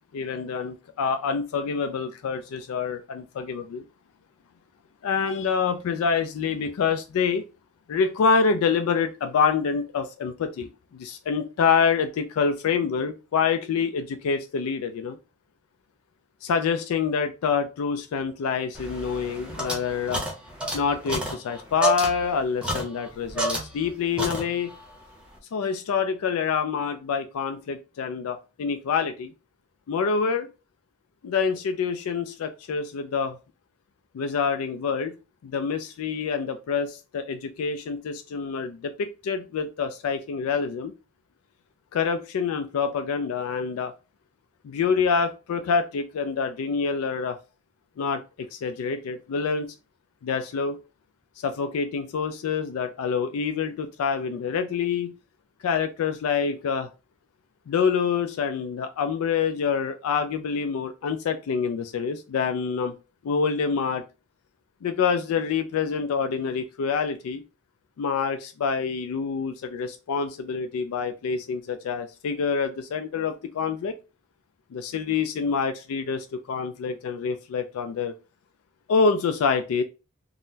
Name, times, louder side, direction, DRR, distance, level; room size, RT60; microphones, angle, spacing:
voice 1, 0.1-3.8 5.0-7.4 7.9-15.2 16.4-20.2 20.7-24.7 25.5-29.3 29.9-30.5 31.2-33.4 34.1-35.1 35.4-40.9 41.9-43.9 44.6-47.4 48.0-49.7 50.2-50.8 51.4-55.1 55.6-56.9 57.7-62.9 63.2-64.0 64.8-67.4 68.0-73.9 74.7-78.1 78.9-79.8, left 5 dB, 75° left, 8 dB, 0.3 m, -26 dB
sound 1, 18.7-23.9 24.2-24.8, right 1 dB, 5° right, 0.7 m, -31 dB
3.7 x 2.0 x 2.6 m, 0.30 s
head